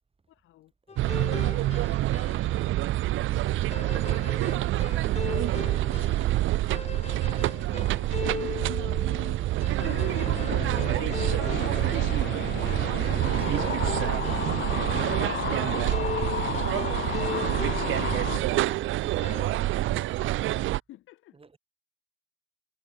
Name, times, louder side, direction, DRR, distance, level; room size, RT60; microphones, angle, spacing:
voice 1, 0.3-0.7 6.6-10.3 11.5-13.0 16.4-21.4, left 15 dB, 85° left, 2.9 m, -52 dB
sound 1, 0.9-2.7 3.7-14.9 15.9-18.8 19.2-19.7, left 5 dB, 35° left, 1.4 m, -39 dB
voice 2, 0.9-6.5 9.8-12.2 12.9-16.5 21.3-21.6, right 4 dB, 30° right, 5.3 m, -49 dB
sound 2, 1.0-20.8, right 16 dB, 80° right, 0.8 m, -27 dB
sound 3, 9.8-18.4, left 10 dB, 60° left, 1.3 m, -34 dB
cardioid pair, 90°, 20 cm